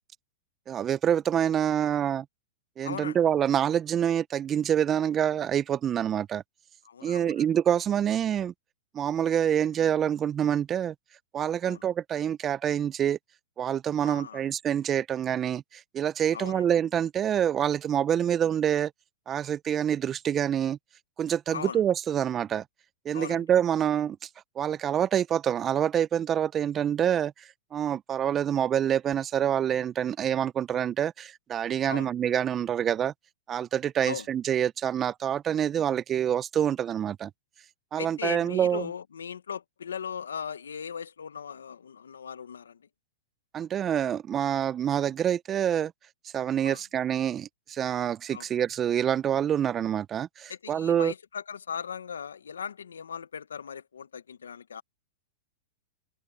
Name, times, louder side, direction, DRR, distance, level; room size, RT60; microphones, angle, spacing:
voice 1, 0.7-2.2 2.8-6.4 7.0-8.5 8.9-10.9 11.3-13.2 13.6-18.9 19.3-20.8 21.2-22.6 23.0-24.2 24.6-27.3 27.7-33.1 33.5-37.3 37.9-38.9 43.5-45.9 46.3-51.1, right 9 dB, 25° right, 0.6 m, -26 dB
voice 2, 2.8-3.2 6.8-7.5 11.6-11.8 14.0-14.4 16.3-16.7 21.5-21.8 23.1-23.4 31.9-32.1 34.1-34.3 37.9-42.9 46.6-46.8 48.3-48.5 50.5-54.8, left 7 dB, 85° left, 1.3 m, -38 dB
hypercardioid pair, 115°, 0 cm